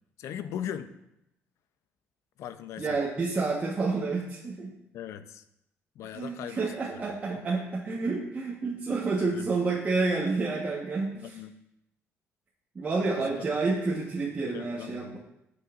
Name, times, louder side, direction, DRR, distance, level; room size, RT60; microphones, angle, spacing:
voice 1, 0.2-0.9 2.4-3.0 4.9-5.4 6.0-7.4 8.9-9.5 11.1-11.5 13.0-13.5 14.4-15.2, left 10 dB, 75° left, 11 dB, 0.6 m, -40 dB
voice 2, 2.8-4.8 6.1-11.3 12.7-15.2, right 3 dB, 30° right, -4 dB, 1.2 m, -29 dB
15.0 x 6.4 x 2.6 m, 0.83 s
cardioid pair, 115°, 5 cm